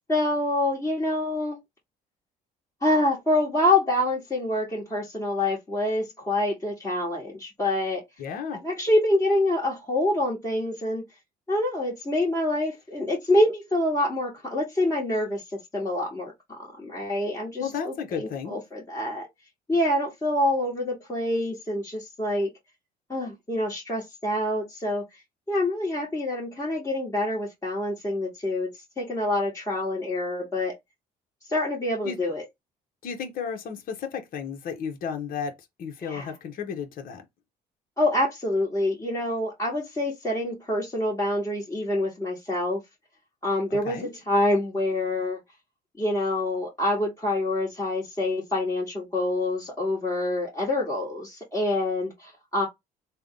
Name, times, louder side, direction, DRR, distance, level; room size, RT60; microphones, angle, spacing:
voice 1, 0.1-1.6 2.8-8.0 8.5-11.0 11.5-15.4 15.7-19.3 19.7-22.5 23.1-25.0 25.5-30.7 31.5-32.4 36.0-36.3 38.0-42.8 43.4-45.4 46.0-52.7, left 1 dB, 15° left, 1.4 m, -26 dB
voice 2, 8.2-8.6 17.6-18.6 32.0-32.2 33.0-35.5 35.8-37.2 43.7-44.1, left 6 dB, 55° left, 0.9 m, -33 dB
3.5 x 2.2 x 3.6 m
cardioid pair, 110°, 17 cm